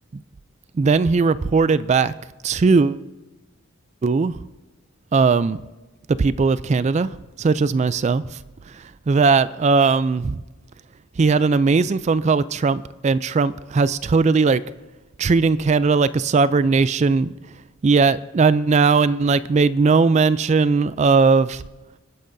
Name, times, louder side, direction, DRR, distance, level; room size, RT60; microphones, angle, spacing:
voice 1, 0.7-2.1 2.4-3.0 4.0-4.3 5.1-5.6 6.2-7.1 7.4-8.2 9.1-10.4 11.2-14.6 15.2-17.3 17.8-21.6, right 4 dB, 35° right, 0.3 m, -18 dB
29.5 x 9.9 x 2.7 m
head